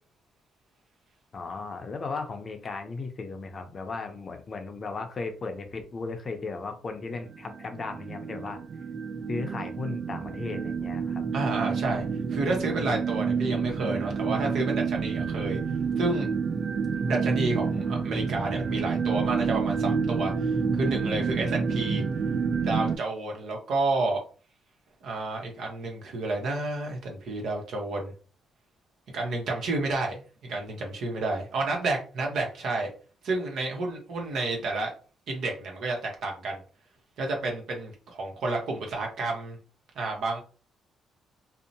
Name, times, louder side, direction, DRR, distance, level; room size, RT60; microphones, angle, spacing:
voice 1, 1.3-8.6 9.3-11.2, left 3 dB, 40° left, 0.5 m, -36 dB
sound 1, 7.3-23.0, right 5 dB, 55° right, 0.3 m, -29 dB
voice 2, 11.3-15.6 16.0-16.3 17.1-22.0 22.6-24.2 25.0-28.1 29.1-32.9 33.2-34.9 35.3-36.6 37.2-39.6 40.0-40.4, right 2 dB, 70° right, 0.8 m, -30 dB
2.7 x 2.0 x 2.6 m
cardioid pair, 90°, 0 cm